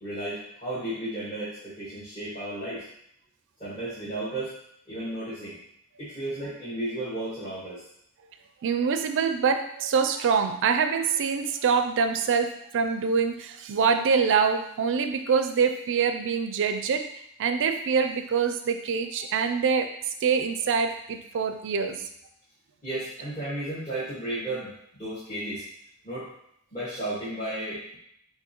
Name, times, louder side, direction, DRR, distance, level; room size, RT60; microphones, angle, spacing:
voice 1, 0.0-2.8 3.6-4.5 4.9-5.6 6.0-7.8 22.8-25.6 26.0-26.3 26.7-28.0, right 1 dB, 30° left, -13 dB, 1.7 m, -34 dB
voice 2, 8.6-19.9 20.2-22.1, right 6 dB, 55° right, 7 dB, 0.4 m, -25 dB
6.1 x 2.6 x 3.0 m, 0.73 s
head